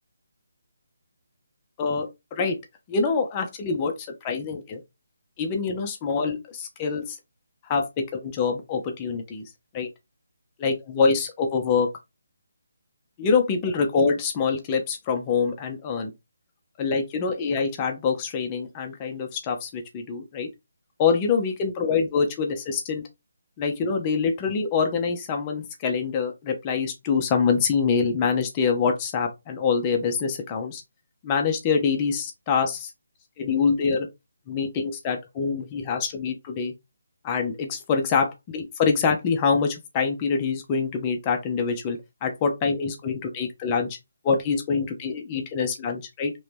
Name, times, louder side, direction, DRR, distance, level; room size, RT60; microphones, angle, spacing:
voice 1, 1.8-2.6 2.9-4.8 5.4-7.2 7.6-9.9 10.6-11.9 13.2-16.1 16.8-20.5 21.0-23.0 23.6-30.8 31.2-32.9 33.4-34.1 34.5-36.7 37.2-44.0 44.2-46.3, left 5 dB, 20° left, 0.6 m, -25 dB
3.0 x 2.8 x 3.4 m
figure-of-eight pair, 160°, 0 cm